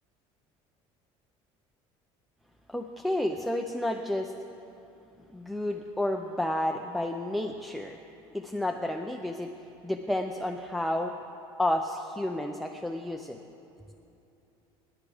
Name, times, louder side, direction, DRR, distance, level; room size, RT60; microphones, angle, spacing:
voice 1, 2.7-4.3 5.3-8.0 8.3-9.5 9.8-11.1 11.6-13.4, left 1 dB, ahead, 3 dB, 0.4 m, -31 dB
24.5 x 10.5 x 3.4 m, 2.8 s
cardioid pair, 160°, 12 cm